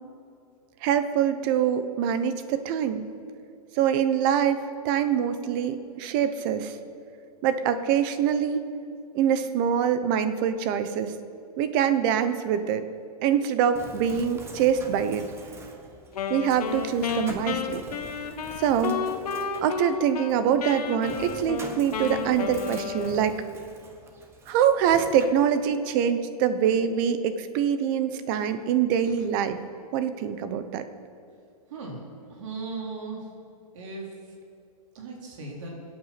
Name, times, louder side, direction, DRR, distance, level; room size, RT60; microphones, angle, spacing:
voice 1, 0.8-3.0 3.8-6.8 7.4-8.7 9.1-11.1 11.6-12.9 13.2-15.2 16.3-17.8 18.6-19.0 19.6-23.4 24.5-29.6 29.9-30.8, right 8 dB, 35° right, 11 dB, 1.0 m, -24 dB
Bird, 13.7-25.2, right 3 dB, 15° right, 1.2 m, -45 dB
Wind instrument woodwind instrument, 16.1-20.3 20.6-23.5, left 6 dB, 75° left, 1.4 m, -32 dB
voice 2, 31.7-32.0 32.3-33.2 33.7-34.1 34.9-35.7, right 3 dB, 55° right, -1 dB, 3.9 m, -37 dB
26.5 x 8.9 x 5.9 m, 2.5 s
hypercardioid pair, 155°, 20 cm